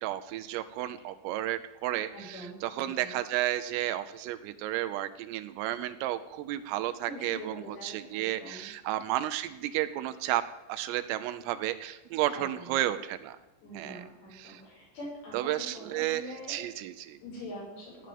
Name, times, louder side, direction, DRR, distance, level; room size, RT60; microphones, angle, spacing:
voice 1, 0.0-10.4 10.7-13.4 13.7-14.1 14.3-14.6 15.3-17.2, right 14 dB, 85° right, 9 dB, 3.3 m, -32 dB
voice 2, 2.1-3.2 7.0-8.7 12.3-12.8 13.6-16.6 17.2-18.1, equal, 65° left, -5 dB, 9.0 m, -44 dB
15.5 x 10.5 x 7.6 m, 1.0 s
omnidirectional pair, 5.9 m